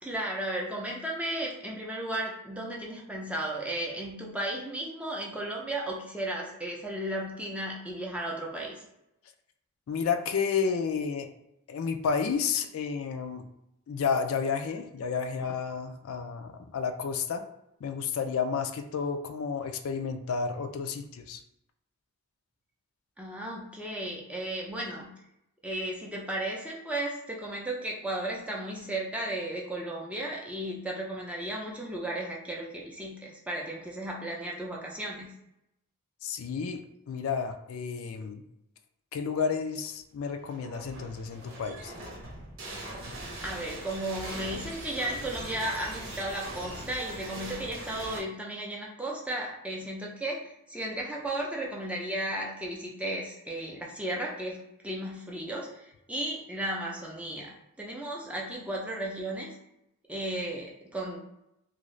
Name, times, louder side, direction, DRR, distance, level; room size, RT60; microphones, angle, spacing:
voice 1, 0.0-8.8 23.2-25.1 25.6-35.3 43.4-54.6 54.8-59.6 60.1-61.2, right 1 dB, 5° right, -2 dB, 0.4 m, -34 dB
voice 2, 9.9-11.3 11.7-13.5 13.9-17.4 17.8-21.4 36.2-36.8 37.1-38.4 39.1-41.9, left 6 dB, 75° left, 6 dB, 0.3 m, -31 dB
sound 1, 40.4-48.2, right 1 dB, 70° right, 0.8 m, -41 dB
2.7 x 2.5 x 3.1 m, 0.84 s
head